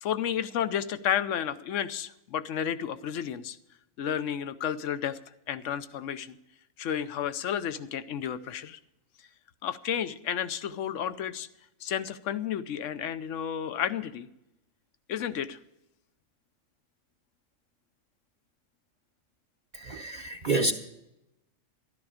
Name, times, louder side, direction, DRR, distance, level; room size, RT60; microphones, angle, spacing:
voice 1, 0.0-3.6 4.0-5.2 5.5-6.4 6.8-8.8 9.6-11.5 11.8-14.3 15.1-15.6, left 9 dB, 70° left, 12 dB, 1.1 m, -31 dB
voice 2, 19.7-20.7, right 2 dB, 45° right, 2 dB, 0.9 m, -28 dB
13.0 x 12.0 x 5.0 m, 0.87 s
omnidirectional pair, 1.4 m